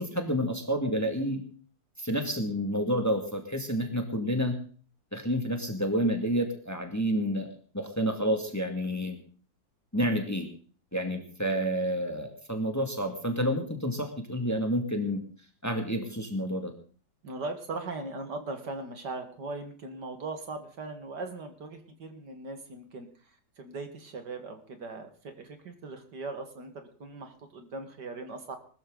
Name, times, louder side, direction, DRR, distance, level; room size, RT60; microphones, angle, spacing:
voice 1, 0.0-1.4 2.0-4.6 5.1-9.2 9.9-10.5 10.9-15.2 15.6-16.7, equal, 10° left, 4 dB, 2.1 m, -29 dB
voice 2, 17.2-23.1 23.6-28.6, right 3 dB, 60° right, 6 dB, 2.4 m, -39 dB
20.5 x 13.5 x 4.0 m, 0.42 s
omnidirectional pair, 2.1 m